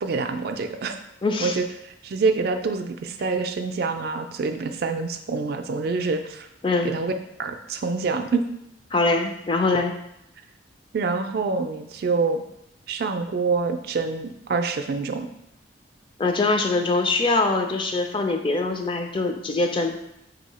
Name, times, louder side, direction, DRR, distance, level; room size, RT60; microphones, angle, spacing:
voice 1, 0.0-1.0 1.4-6.5 6.8-7.1 7.4-8.4 10.9-12.4 12.9-15.3, right 4 dB, 55° right, 7 dB, 0.3 m, -26 dB
voice 2, 1.2-1.6 6.6-6.9 8.9-9.9 16.2-19.9, left 3 dB, 30° left, 4 dB, 0.4 m, -23 dB
3.9 x 2.8 x 4.1 m, 0.82 s
head